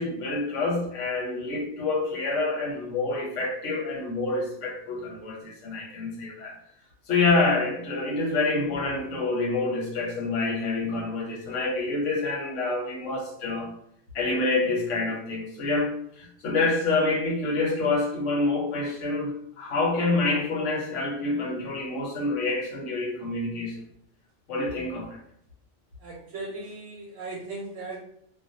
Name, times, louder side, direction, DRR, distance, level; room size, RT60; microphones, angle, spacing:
voice 1, 0.0-6.6 7.1-13.7 14.1-23.8 24.5-25.2, left 3 dB, 85° left, 1.1 m, -27 dB
voice 2, 26.0-28.0, right 2 dB, 90° right, 0.9 m, -37 dB
2.3 x 2.1 x 2.6 m
omnidirectional pair, 1.2 m